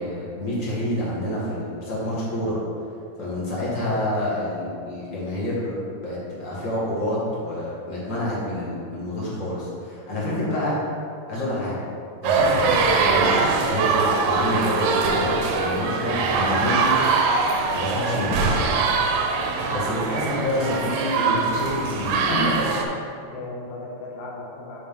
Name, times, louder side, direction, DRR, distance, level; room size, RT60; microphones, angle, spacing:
voice 1, 0.0-2.6 3.2-10.8 11.3-11.8 12.2-17.2 17.7-18.4 19.7-22.5, left 1 dB, 35° left, -7 dB, 1.5 m, -28 dB
sound 1, 12.2-22.8, right 4 dB, 90° right, 2.1 m, -22 dB
voice 2, 22.4-23.0 23.3-24.8, left 2 dB, 60° left, -3 dB, 1.2 m, -36 dB
6.9 x 3.8 x 5.1 m, 2.5 s
omnidirectional pair, 3.3 m